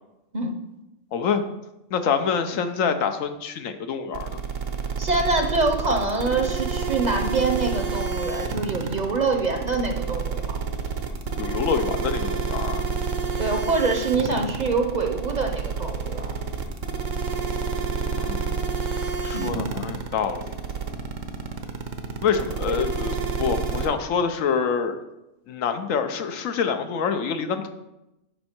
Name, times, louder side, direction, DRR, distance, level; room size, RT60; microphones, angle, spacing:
voice 1, 1.1-1.4 1.9-4.3 11.4-12.8 18.0-18.5 19.2-20.5 22.2-25.0 25.5-27.7, left 6 dB, 85° left, 8 dB, 1.1 m, -26 dB
sound 1, 4.1-23.9, right 5 dB, 80° right, 1.2 m, -28 dB
voice 2, 5.0-10.6 13.4-16.4 19.3-19.7, right 3 dB, 40° right, 4 dB, 0.7 m, -25 dB
10.0 x 5.3 x 4.4 m, 0.93 s
omnidirectional pair, 1.3 m